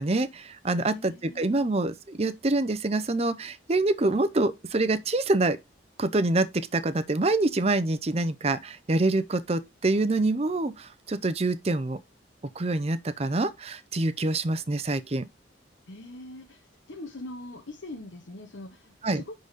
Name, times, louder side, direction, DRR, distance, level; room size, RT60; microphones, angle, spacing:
voice 1, 0.0-5.6 6.0-12.0 12.6-15.3 19.0-19.2, right 2 dB, 35° right, 0.6 m, -26 dB
voice 2, 0.8-1.8 15.9-19.3, left 2 dB, 90° left, 1.2 m, -43 dB
10.0 x 4.0 x 4.0 m
head